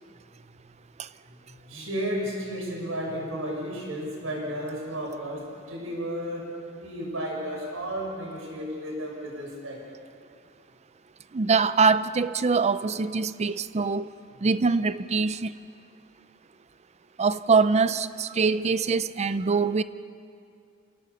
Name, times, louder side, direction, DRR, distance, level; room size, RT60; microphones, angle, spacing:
voice 1, 1.3-9.8, equal, 80° right, 6.7 m, -33 dB
voice 2, 11.3-14.1 14.4-15.6 17.2-19.8, right 4 dB, 35° right, 0.5 m, -23 dB
28.0 x 18.0 x 6.9 m
head